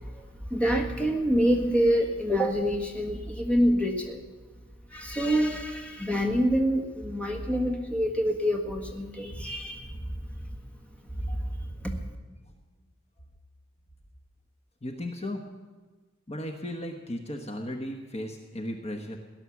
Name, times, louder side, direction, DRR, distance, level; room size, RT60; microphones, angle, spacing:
voice 1, 0.0-4.2 4.9-10.0 11.1-11.2 11.8-12.0, equal, 5° left, 2 dB, 1.6 m, -26 dB
voice 2, 14.8-15.4 16.3-19.2, left 1 dB, 30° left, 3 dB, 1.1 m, -36 dB
17.5 x 11.0 x 7.2 m, 1.3 s
head